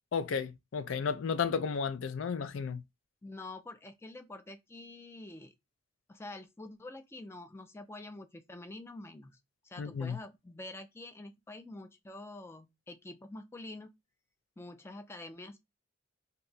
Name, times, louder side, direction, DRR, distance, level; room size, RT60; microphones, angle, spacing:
voice 1, 0.1-2.8 9.8-10.2, left 6 dB, 85° left, 0.4 m, -33 dB
voice 2, 3.2-5.5 6.1-9.4 9.6-13.9 14.6-15.6, left 2 dB, 15° left, 0.3 m, -47 dB
2.7 x 2.2 x 3.9 m
head